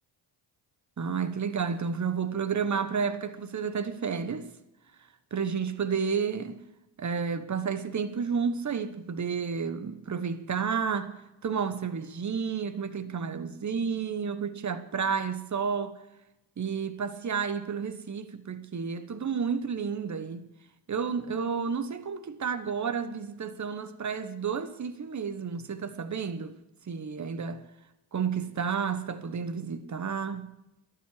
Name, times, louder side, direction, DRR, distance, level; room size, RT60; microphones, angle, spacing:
voice 1, 1.0-4.5 5.3-6.6 7.0-11.2 11.4-15.9 16.6-20.5 20.9-26.5 26.9-27.6 28.1-30.5, right 6 dB, 35° right, 1.3 m, -31 dB
12.0 x 10.5 x 8.5 m
cardioid pair, 80°, 47 cm